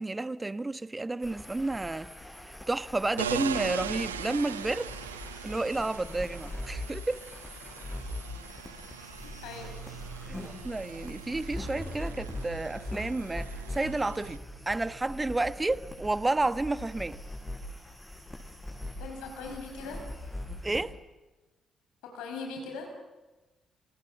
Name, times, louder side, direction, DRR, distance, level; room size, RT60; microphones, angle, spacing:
voice 1, 0.0-2.1 2.4-4.9 5.4-7.2 10.3-17.2 20.6-20.9, right 2 dB, 20° right, 1.2 m, -31 dB
sound 1, 1.2-20.8, left 1 dB, 10° left, 6.9 m, -42 dB
sound 2, 3.2-14.4, right 8 dB, 80° right, 1.0 m, -41 dB
voice 2, 9.4-9.7 19.0-20.1 22.0-22.9, left 4 dB, 65° left, 5.0 m, -40 dB
29.0 x 28.0 x 7.3 m
figure-of-eight pair, 40°, 0 cm